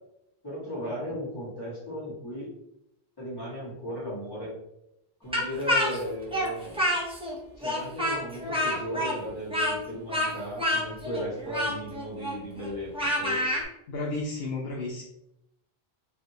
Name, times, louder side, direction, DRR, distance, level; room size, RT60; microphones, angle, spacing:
voice 1, 0.4-2.5 3.2-4.5 5.2-6.9 7.6-13.4, equal, 20° left, -8 dB, 1.5 m, -36 dB
Speech, 5.3-7.3 7.6-13.6, left 1 dB, 5° right, 0.5 m, -28 dB
voice 2, 13.9-15.0, left 2 dB, 75° left, -1 dB, 0.8 m, -32 dB
3.2 x 2.6 x 2.8 m, 0.83 s
omnidirectional pair, 1.1 m